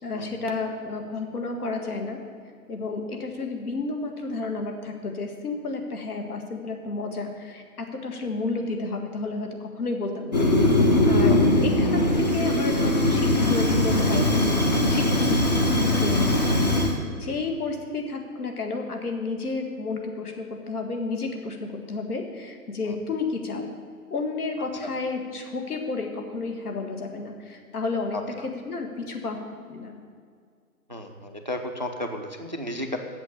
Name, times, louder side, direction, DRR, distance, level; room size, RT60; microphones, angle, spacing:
voice 1, 0.0-2.2 2.7-10.4 11.1-14.6 14.9-16.4 17.1-23.7 24.1-29.4 29.7-29.9, left 3 dB, 75° left, 4 dB, 1.9 m, -31 dB
Fire, 10.3-17.0, left 1 dB, 30° left, 0.7 m, -21 dB
voice 2, 28.1-28.5 30.9-33.0, left 1 dB, 35° right, 5 dB, 0.4 m, -33 dB
7.9 x 7.3 x 8.2 m, 2.1 s
hypercardioid pair, 170°, 45 cm